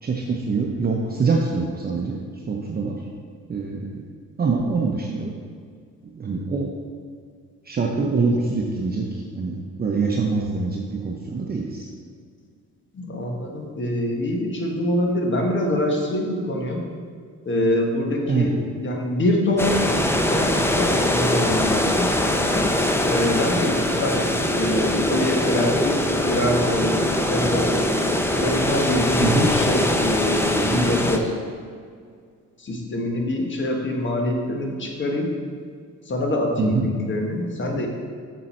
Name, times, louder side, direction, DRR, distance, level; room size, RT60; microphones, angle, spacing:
voice 1, 0.0-2.2 2.5-3.0 3.5-3.9 4.4-5.3 6.1-6.7 7.6-11.9 18.3-18.5 29.2-29.5 36.6-36.8, right 4 dB, 30° right, -1 dB, 0.8 m, -24 dB
voice 2, 12.9-16.8 17.4-19.9 20.2-22.1 23.0-27.7 28.4-31.3 32.6-35.3 36.1-37.9, left 1 dB, 40° left, 1 dB, 1.4 m, -25 dB
sound 1, 19.6-31.2, left 1 dB, 10° left, 0.6 m, -22 dB
6.8 x 6.4 x 4.3 m, 2.1 s
cardioid pair, 90°, 30 cm